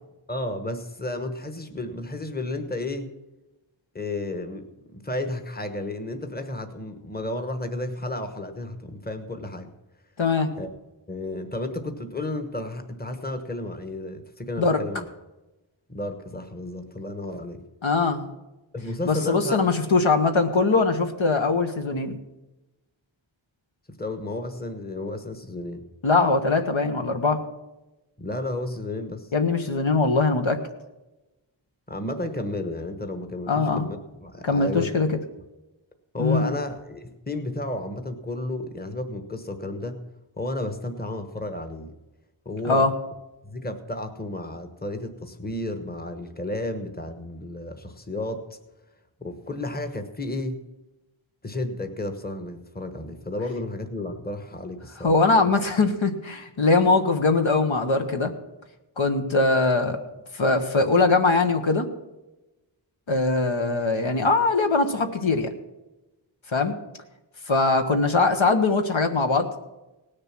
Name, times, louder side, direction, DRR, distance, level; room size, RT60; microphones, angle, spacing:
voice 1, 0.3-3.1 3.9-4.7 5.0-9.7 10.6-10.7 11.1-15.1 15.9-17.6 18.7-19.6 24.0-25.8 28.2-29.3 31.9-35.1 36.1-40.0 40.4-41.9 42.4-42.9 43.4-48.4 49.2-50.6 51.4-55.1, left 1 dB, 20° left, 7 dB, 1.2 m, -32 dB
voice 2, 10.2-10.5 14.6-14.8 17.8-18.2 19.1-22.2 26.0-27.4 29.3-30.6 33.5-33.9 34.4-35.2 36.2-36.5 42.6-42.9 55.0-58.3 59.0-60.0 60.3-61.9 63.1-65.5 66.5-66.7 67.5-69.5, left 3 dB, 65° left, 5 dB, 1.1 m, -21 dB
18.0 x 6.6 x 5.9 m, 1.0 s
wide cardioid pair, 60°, 49 cm